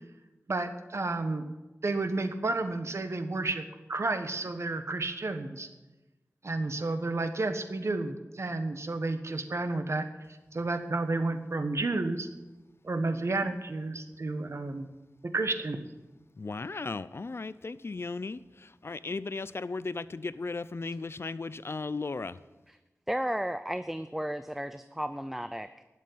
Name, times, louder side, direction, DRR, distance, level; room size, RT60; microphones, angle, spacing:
voice 1, 0.5-1.4 1.8-3.6 3.9-5.7 6.4-10.1 10.5-12.3 12.8-14.9 15.2-15.8, right 2 dB, 60° right, 8 dB, 1.3 m, -31 dB
voice 2, 16.4-18.4 18.8-22.4, left 3 dB, 50° left, 16 dB, 0.5 m, -36 dB
voice 3, 23.1-25.8, equal, 5° right, 11 dB, 0.5 m, -34 dB
12.0 x 7.5 x 9.9 m, 1.1 s
wide cardioid pair, 60°, 5 cm